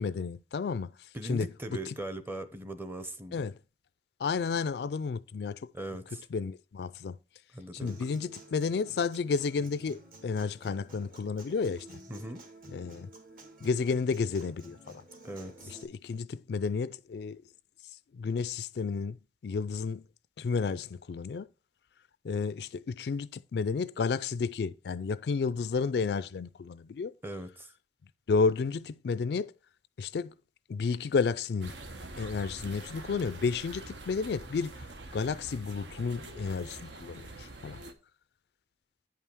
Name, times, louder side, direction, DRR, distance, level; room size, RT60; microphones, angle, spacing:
voice 1, 0.0-1.5 1.9-2.0 3.3-3.6 4.2-5.6 6.3-7.2 7.8-11.9 12.7-13.1 13.6-15.0 15.8-17.4 18.1-19.2 19.4-20.0 20.4-21.5 22.2-27.1 28.3-29.5 30.0-30.3 30.7-31.7 32.2-34.7 35.1-37.8, left 5 dB, 60° left, 0.4 m, -31 dB
voice 2, 1.1-3.5 5.7-6.2 7.5-7.9 12.1-12.4 15.2-15.7 27.2-27.7, right 1 dB, 10° right, 0.7 m, -39 dB
Human voice / Acoustic guitar, 7.9-15.8, right 1 dB, 50° right, 2.0 m, -52 dB
sound 1, 31.6-37.9, right 2 dB, 75° right, 1.1 m, -45 dB
9.1 x 5.5 x 4.6 m
head